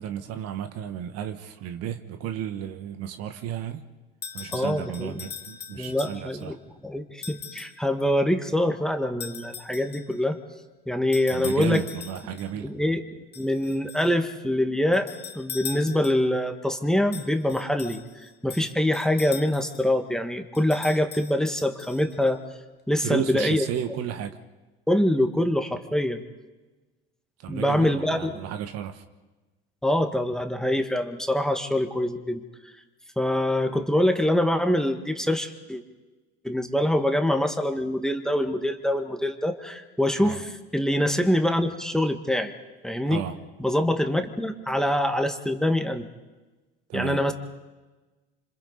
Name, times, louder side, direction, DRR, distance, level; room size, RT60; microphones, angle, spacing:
voice 1, 0.0-3.8 4.3-6.6 11.3-12.7 23.0-24.4 27.4-29.0 40.2-40.4 43.1-43.3 46.9-47.2, right 9 dB, 60° right, 9 dB, 1.4 m, -33 dB
sound 1, 4.2-6.5 7.2-7.8 9.2-10.2 11.1-12.5 13.3-14.2 14.9-16.4 17.1-19.9 20.5-22.3, left 6 dB, 35° left, 1.6 m, -41 dB
voice 2, 4.5-5.2 5.8-6.6 6.8-10.4 10.9-11.8 12.6-13.0 13.4-15.1 15.4-18.0 18.4-22.4 22.9-23.7 24.9-26.2 27.5-28.4 29.8-32.4 33.2-35.8 36.4-42.5 42.8-43.2 43.6-46.1 46.9-47.3, left 1 dB, ahead, 6 dB, 1.8 m, -24 dB
27.0 x 26.0 x 4.1 m, 1.2 s
hypercardioid pair, 80°, 29 cm